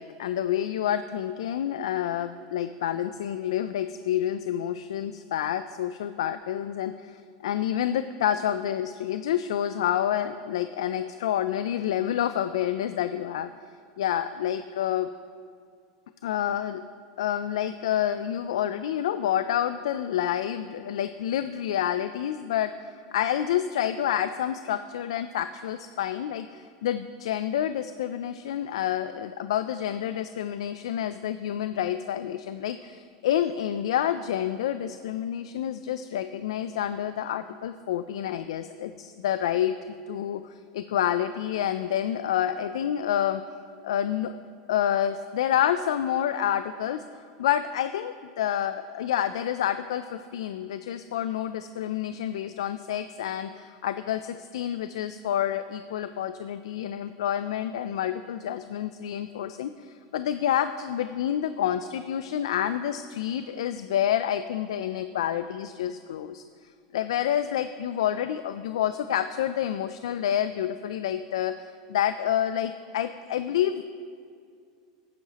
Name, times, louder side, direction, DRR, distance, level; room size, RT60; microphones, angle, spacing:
voice 1, 0.0-13.5 14.0-15.1 16.2-16.8 17.2-39.8 40.1-43.4 43.8-44.3 44.7-66.4 66.9-73.8, left 10 dB, 85° left, 11 dB, 0.3 m, -28 dB
12.5 x 9.4 x 2.9 m, 2.3 s
supercardioid pair, 125°, 3 cm